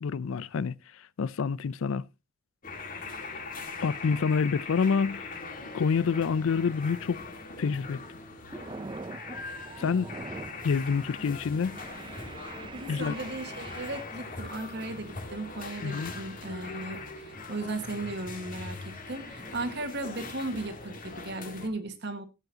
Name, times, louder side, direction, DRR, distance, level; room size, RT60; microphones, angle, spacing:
voice 1, 0.0-0.7 1.2-2.0 3.8-5.3 5.7-7.2 7.6-8.0 9.8-10.1 10.6-11.8 12.9-13.1 15.8-16.1, left 5 dB, 75° left, 0.4 m, -27 dB
sound 1, 2.6-21.7, left 3 dB, 40° left, 1.9 m, -41 dB
sound 2, 7.6-7.9 8.2-10.7 11.0-11.2 11.7-14.0, right 3 dB, 25° right, 0.5 m, -43 dB
voice 2, 12.7-22.2, right 2 dB, 55° right, 1.6 m, -36 dB
16.0 x 8.0 x 2.8 m
head